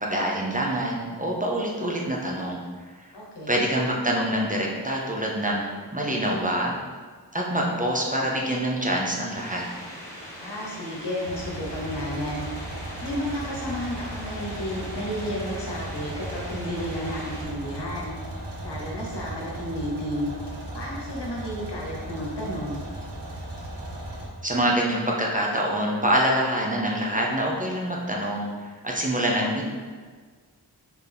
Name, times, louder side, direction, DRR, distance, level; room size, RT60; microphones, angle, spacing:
voice 1, 0.0-2.6 3.0-3.1 3.5-6.7 7.3-9.7 24.4-29.6, right 1 dB, 20° right, -2 dB, 0.6 m, -25 dB
voice 2, 3.1-3.6 10.3-12.5 12.8-18.1 18.6-20.3 20.7-22.8, equal, 85° left, -3 dB, 1.0 m, -32 dB
sound 1, 9.3-17.5, equal, 5° left, 1.2 m, -41 dB
sound 2, 11.3-24.3, right 1 dB, 80° right, 0.8 m, -36 dB
3.9 x 2.8 x 3.4 m, 1.5 s
wide cardioid pair, 60°, 40 cm